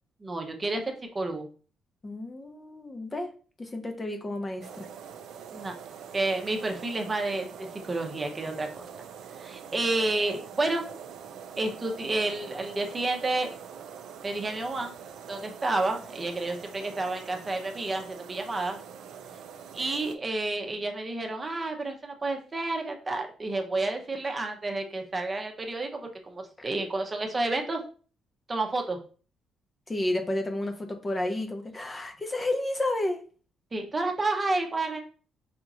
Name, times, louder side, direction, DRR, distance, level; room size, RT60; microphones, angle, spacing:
voice 1, 0.2-1.5 5.5-5.7 6.1-8.8 9.4-10.9 11.6-13.5 14.2-14.9 15.3-18.8 19.7-27.8 28.5-29.0 33.7-35.0, right 2 dB, 30° right, 3 dB, 0.7 m, -30 dB
voice 2, 2.0-3.3 3.6-4.9 29.9-33.2, left 1 dB, 25° left, 5 dB, 0.7 m, -31 dB
sound 1, 4.6-20.2, right 7 dB, 80° right, 0.4 m, -44 dB
5.0 x 2.9 x 2.5 m, 0.39 s
cardioid pair, 90°, 0 cm